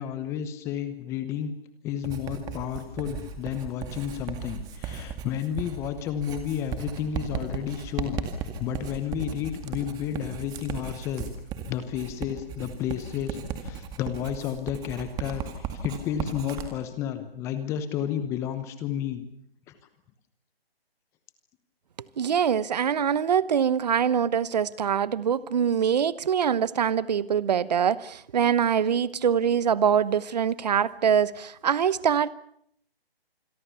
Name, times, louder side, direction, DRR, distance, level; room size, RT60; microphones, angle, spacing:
voice 1, 0.0-1.5 1.8-8.2 8.6-11.3 11.7-19.2, left 9 dB, 10° left, 0.9 m, -31 dB
Writing, 2.0-16.7, right 7 dB, 10° right, 2.1 m, -36 dB
voice 2, 22.2-32.3, right 8 dB, 40° right, 1.0 m, -24 dB
27.5 x 22.0 x 7.0 m
figure-of-eight pair, 155°, 31 cm